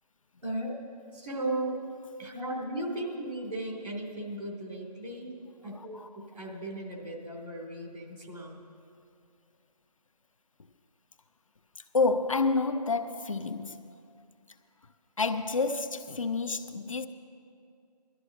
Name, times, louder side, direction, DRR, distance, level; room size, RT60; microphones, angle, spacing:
voice 1, 0.4-0.7 1.1-1.9 2.2-5.3 5.6-8.6, right 1 dB, 70° right, 3.0 m, -36 dB
voice 2, 5.7-6.1 11.9-13.9 15.2-17.1, left 3 dB, 50° left, 0.6 m, -29 dB
17.5 x 12.5 x 3.8 m
figure-of-eight pair, 160°, 21 cm